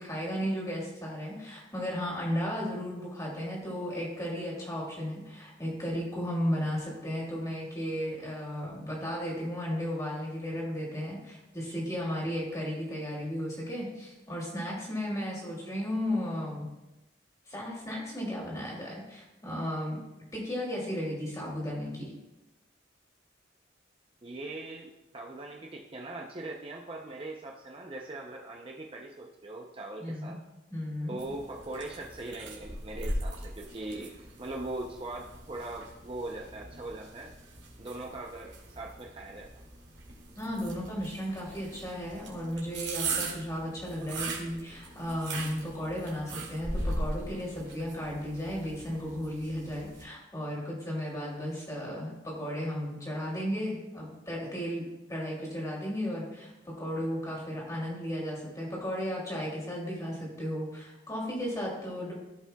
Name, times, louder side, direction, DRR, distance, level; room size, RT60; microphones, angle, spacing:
voice 1, 0.0-16.7 17.5-20.0 20.3-22.1 30.0-30.4 30.7-31.2 40.3-62.1, equal, 20° left, -4 dB, 2.6 m, -34 dB
voice 2, 24.2-30.4 31.1-34.1 34.4-37.3 37.8-39.6, right 2 dB, 30° right, 0 dB, 0.6 m, -40 dB
sound 1, 31.2-50.0, right 2 dB, 75° right, 2.1 m, -40 dB
14.5 x 5.5 x 2.3 m, 0.98 s
head